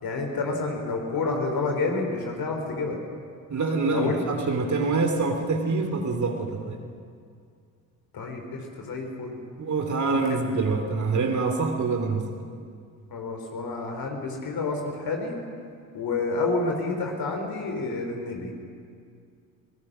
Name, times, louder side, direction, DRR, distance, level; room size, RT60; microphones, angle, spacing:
voice 1, 0.0-3.0 3.9-4.2 8.1-9.3 10.1-10.2 13.1-15.4 15.9-18.5, left 3 dB, 50° left, 2 dB, 3.9 m, -29 dB
voice 2, 3.5-6.8 9.6-12.2, right 3 dB, 40° right, 4 dB, 3.0 m, -25 dB
23.5 x 18.5 x 6.2 m, 2.3 s
hypercardioid pair, 50°, 45 cm